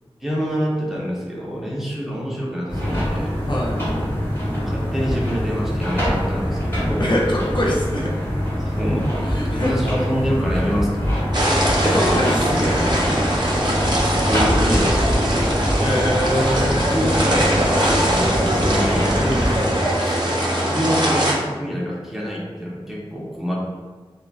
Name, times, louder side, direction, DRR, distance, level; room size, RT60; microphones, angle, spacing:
voice 1, 0.2-3.3 4.6-7.0 8.6-11.8 14.2-15.5 16.7-19.1 20.0-23.5, equal, 5° right, -4 dB, 0.6 m, -26 dB
sound 1, 2.7-19.7, equal, 25° left, 1.2 m, -24 dB
voice 2, 3.5-3.8 7.0-8.1 9.2-9.8 11.8-13.2 15.8-16.8 19.2-19.4, left 1 dB, 50° left, -4 dB, 0.6 m, -23 dB
sound 2, 11.3-21.3, right 1 dB, 45° right, 0.6 m, -21 dB
3.7 x 2.2 x 2.3 m, 1.4 s
wide cardioid pair, 70°, 10 cm